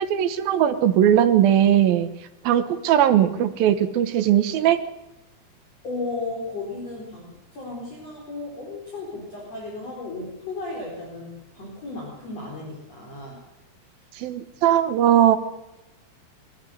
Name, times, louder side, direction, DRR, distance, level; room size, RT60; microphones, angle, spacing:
voice 1, 0.0-2.1 2.4-4.8 14.2-15.4, right 10 dB, 75° right, 10 dB, 3.0 m, -19 dB
voice 2, 5.8-13.4, left 3 dB, 40° left, -3 dB, 5.4 m, -34 dB
23.0 x 14.5 x 9.4 m, 0.94 s
omnidirectional pair, 4.4 m